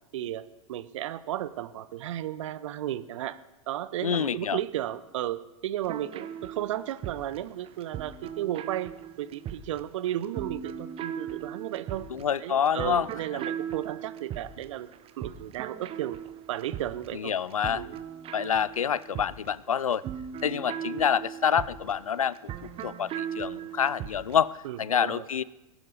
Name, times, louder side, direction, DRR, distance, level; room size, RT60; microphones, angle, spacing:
voice 1, 0.1-3.4 3.7-8.9 9.2-12.1 12.4-14.9 15.2-16.2 16.5-17.3 17.7-18.0 24.6-25.3, right 12 dB, 65° right, 15 dB, 0.8 m, -34 dB
voice 2, 4.0-4.6 12.1-13.1 17.1-17.8 18.3-20.0 20.4-25.4, left 8 dB, 85° left, 21 dB, 0.4 m, -27 dB
sound 1, 5.9-24.5, right 9 dB, 35° right, 1.0 m, -39 dB
20.5 x 12.0 x 4.0 m, 1.0 s
figure-of-eight pair, 90°, 17 cm